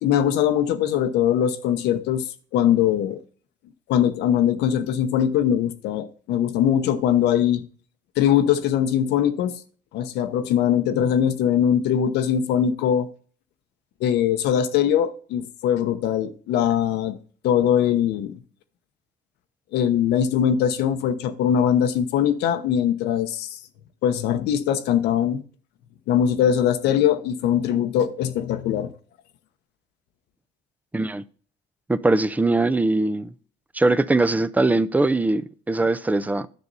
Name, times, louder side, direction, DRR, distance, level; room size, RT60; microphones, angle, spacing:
voice 1, 0.0-2.3 2.5-3.2 3.9-7.6 8.2-9.6 9.9-13.1 14.0-17.2 17.4-18.4 19.7-23.6 24.0-25.4 26.1-28.9, left 9 dB, 85° left, 1.0 m, -21 dB
voice 2, 30.9-31.2 31.9-33.3 33.7-36.5, right 2 dB, 10° right, 0.5 m, -21 dB
10.5 x 6.7 x 4.1 m
cardioid pair, 110°, 17 cm